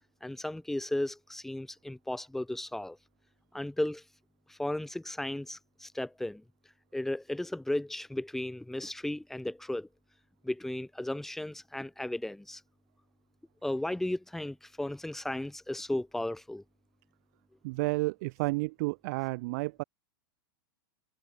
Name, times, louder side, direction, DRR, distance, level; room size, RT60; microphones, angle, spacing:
voice 1, 0.2-3.0 3.5-4.0 4.5-6.4 6.9-9.9 10.4-12.6 13.6-16.6, left 1 dB, 5° left, 0.9 m, -35 dB
voice 2, 17.6-19.8, right 25 dB, 50° right, 0.9 m, -31 dB
hypercardioid pair, 140°, 12 cm